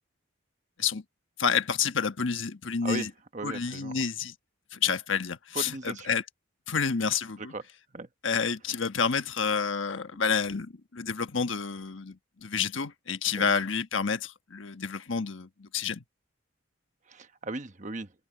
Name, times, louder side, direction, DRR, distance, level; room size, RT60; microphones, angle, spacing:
voice 1, 1.4-3.1 3.4-4.3 4.7-6.2 6.7-7.5 8.2-16.0, left 6 dB, 70° left, 1.3 m, -29 dB
voice 2, 3.3-4.1 5.5-6.1 7.4-7.6 7.9-8.1 13.3-13.5 17.1-18.1, right 3 dB, 35° right, 1.2 m, -37 dB
head